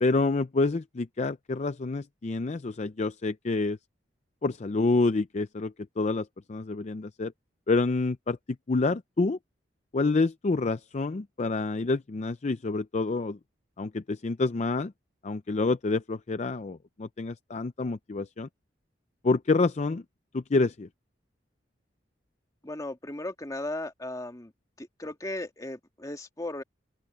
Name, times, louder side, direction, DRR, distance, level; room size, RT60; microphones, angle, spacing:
voice 1, 0.0-3.8 4.4-7.3 7.7-8.4 8.7-9.4 9.9-13.4 13.8-14.9 15.2-18.5 19.2-20.0 20.3-20.9, left 3 dB, 40° left, 0.5 m, -28 dB
voice 2, 22.6-24.5 24.8-26.6, left 1 dB, 20° left, 1.9 m, -36 dB
open air
head